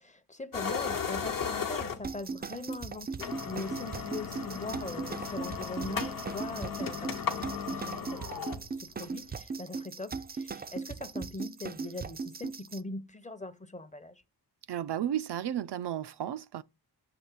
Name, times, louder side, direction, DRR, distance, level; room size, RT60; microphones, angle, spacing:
voice 1, 0.0-14.2, left 2 dB, 20° left, 0.6 m, -41 dB
sound 1, 0.5-2.2 2.7-2.8 3.1-9.3, left 6 dB, 55° left, 0.9 m, -36 dB
sound 2, 2.0-12.8, right 4 dB, 25° right, 0.3 m, -39 dB
voice 2, 14.7-16.6, right 10 dB, 85° right, 0.5 m, -33 dB
6.9 x 3.1 x 6.0 m
wide cardioid pair, 80°, 40 cm